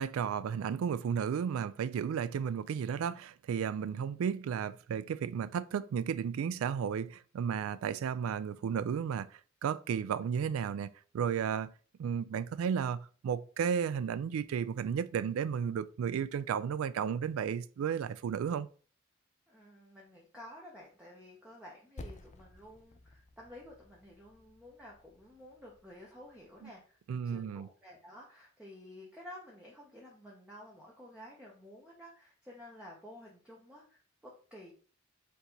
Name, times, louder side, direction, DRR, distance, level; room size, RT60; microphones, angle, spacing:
voice 1, 0.0-11.7 12.0-18.7 26.6-26.7 27.1-27.7, right 7 dB, 85° right, 0.3 m, -33 dB
voice 2, 19.5-34.7, left 1 dB, 5° right, 0.8 m, -52 dB
Percussion, 22.0-26.8, left 2 dB, 35° left, 0.5 m, -53 dB
4.5 x 2.7 x 3.8 m
head